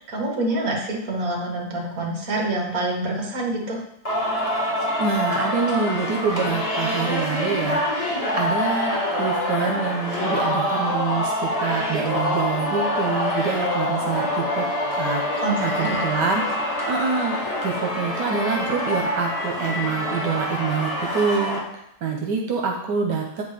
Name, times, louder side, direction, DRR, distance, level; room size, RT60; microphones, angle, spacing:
voice 1, 0.0-3.8 15.4-16.1, right 2 dB, 55° right, -1 dB, 2.1 m, -26 dB
Singing, 4.1-21.6, left 1 dB, 20° left, 1.7 m, -25 dB
voice 2, 5.0-8.0 8.3-14.6 14.9-16.4 16.9-21.6 22.0-23.4, right 5 dB, 90° right, 1 dB, 1.5 m, -26 dB
8.4 x 4.3 x 5.0 m, 0.81 s
omnidirectional pair, 1.8 m